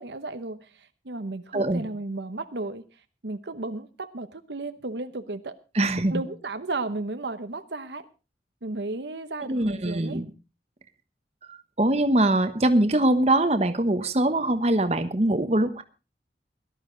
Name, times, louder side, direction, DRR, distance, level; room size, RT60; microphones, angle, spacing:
voice 1, 0.0-2.8 3.2-5.6 6.1-8.1 8.6-10.2, right 2 dB, 75° right, 10 dB, 1.0 m, -34 dB
voice 2, 1.5-1.8 5.7-6.2 9.5-10.3 11.5-15.8, right 1 dB, 35° right, 9 dB, 1.1 m, -23 dB
18.0 x 12.0 x 3.9 m, 0.31 s
head